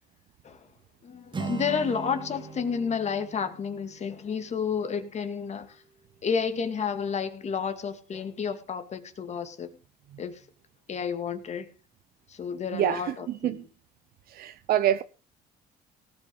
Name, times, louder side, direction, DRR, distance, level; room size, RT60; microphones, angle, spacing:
voice 1, 1.0-5.8 6.2-9.7 10.2-10.4 10.9-11.7 12.3-13.6, left 6 dB, 40° left, 2.2 m, -31 dB
Acoustic guitar, 1.3-5.3, right 5 dB, 25° right, 2.5 m, -40 dB
voice 2, 12.7-13.6 14.3-15.0, right 11 dB, 65° right, 0.7 m, -26 dB
18.0 x 8.2 x 5.4 m
cardioid pair, 110°, 17 cm